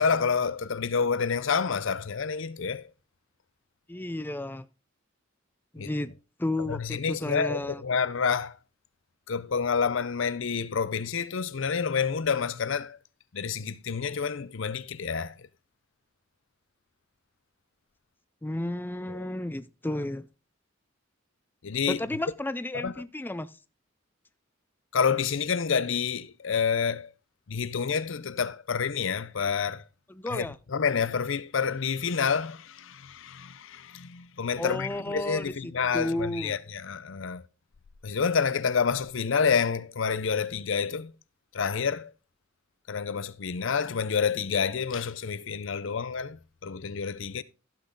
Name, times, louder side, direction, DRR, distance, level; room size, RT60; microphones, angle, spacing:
voice 1, 0.0-2.9 5.8-5.9 6.7-8.6 9.3-13.0 13.3-15.5 19.1-19.3 21.6-22.0 22.7-22.9 24.9-27.1 27.5-29.8 30.3-37.4 38.0-41.1 41.5-42.1 42.9-47.4, left 6 dB, 65° left, 0.6 m, -28 dB
voice 2, 3.9-4.7 5.7-6.1 6.4-7.8 18.4-20.3 21.9-23.5 30.1-30.6 34.6-36.6, left 1 dB, 10° left, 0.4 m, -32 dB
15.0 x 6.1 x 3.8 m
head